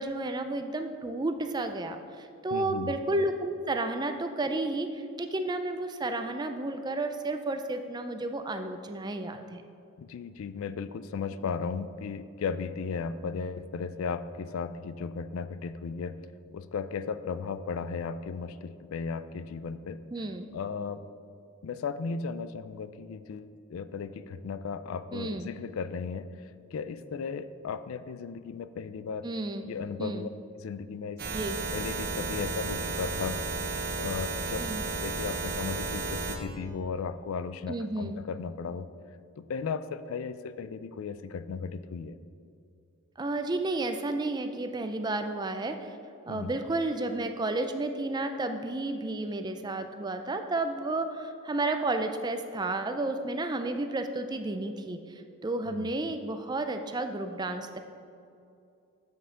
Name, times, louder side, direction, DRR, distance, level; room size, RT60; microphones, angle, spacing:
voice 1, 0.0-9.6 20.1-20.5 25.1-25.5 29.2-29.7 30.0-30.3 31.3-31.6 34.6-34.8 37.7-38.2 43.2-46.0 46.3-57.8, right 2 dB, 20° right, 7 dB, 0.4 m, -32 dB
voice 2, 2.5-2.9 10.0-16.2 16.5-20.2 20.5-21.0 21.6-29.3 29.6-30.3 30.6-31.2 31.7-34.7 35.0-38.9 39.4-42.2 46.3-46.5 55.6-55.9, left 5 dB, 65° left, 13 dB, 0.3 m, -36 dB
sound 1, 31.2-36.4, right 3 dB, 45° right, 0.9 m, -33 dB
7.8 x 7.7 x 3.7 m, 2.5 s
head